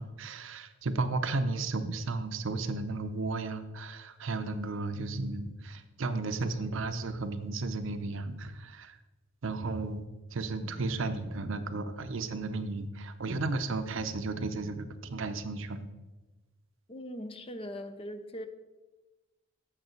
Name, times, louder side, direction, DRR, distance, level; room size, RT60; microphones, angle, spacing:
voice 1, 0.0-9.0 9.4-10.0 10.3-15.9, right 3 dB, 70° right, 10 dB, 0.7 m, -34 dB
voice 2, 16.9-18.5, equal, 25° left, 10 dB, 0.6 m, -40 dB
8.1 x 7.0 x 4.5 m, 1.1 s
head